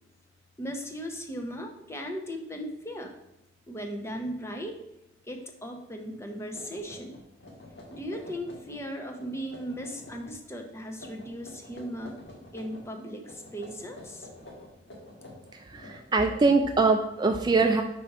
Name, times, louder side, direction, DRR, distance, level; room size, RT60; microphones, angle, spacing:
voice 1, 0.6-3.1 3.7-4.8 5.3-7.2 7.9-12.1 12.5-14.3, equal, 15° left, 3 dB, 0.7 m, -37 dB
sound 1, 6.1-6.2 6.5-8.8 9.1-10.3 10.9-12.9 13.2-16.5, left 1 dB, 80° left, 1.7 m, -48 dB
voice 2, 15.5-17.8, right 3 dB, 25° right, 6 dB, 0.3 m, -23 dB
5.1 x 4.2 x 5.8 m, 0.88 s
head